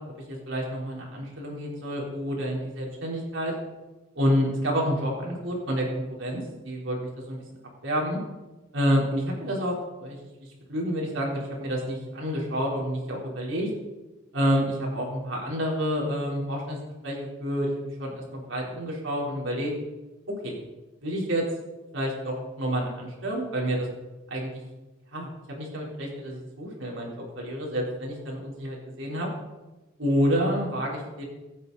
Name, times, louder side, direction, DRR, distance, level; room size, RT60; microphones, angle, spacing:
voice 1, 0.3-3.5 4.1-7.4 7.8-8.2 8.7-10.2 10.7-13.7 14.3-16.8 17.0-19.7 20.3-20.6 21.0-21.4 21.9-23.9 24.3-24.6 25.1-25.3 25.6-27.1 27.4-29.3 30.0-31.2, equal, 75° right, -2 dB, 4.0 m, -28 dB
23.5 x 8.8 x 4.1 m, 1.1 s
head